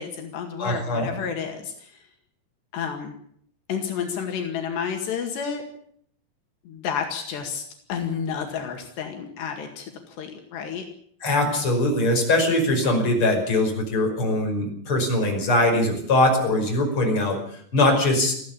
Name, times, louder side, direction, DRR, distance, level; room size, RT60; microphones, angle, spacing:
voice 1, 0.0-2.0 2.7-3.1 3.7-5.6 6.7-7.6 7.9-10.9, left 7 dB, 80° left, 4 dB, 4.2 m, -30 dB
voice 2, 0.6-1.1 11.2-17.4 17.7-18.3, left 1 dB, 30° left, 2 dB, 6.2 m, -21 dB
21.0 x 15.0 x 8.7 m, 0.64 s
omnidirectional pair, 4.9 m